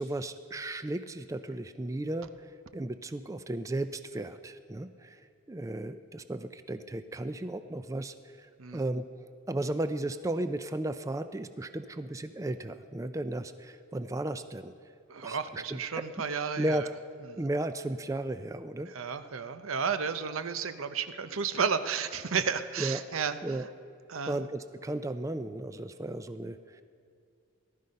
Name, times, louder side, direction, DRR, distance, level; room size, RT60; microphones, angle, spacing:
voice 1, 0.0-5.2 5.5-14.7 15.2-16.1 16.6-16.8 17.4-18.9 22.8-23.0 23.4-23.7 24.3-26.8, right 1 dB, 15° right, 11 dB, 0.4 m, -35 dB
voice 2, 15.1-16.9 17.3-17.5 18.9-23.4 24.1-24.4, right 6 dB, 90° right, 11 dB, 0.7 m, -32 dB
18.0 x 12.5 x 5.4 m, 2.3 s
head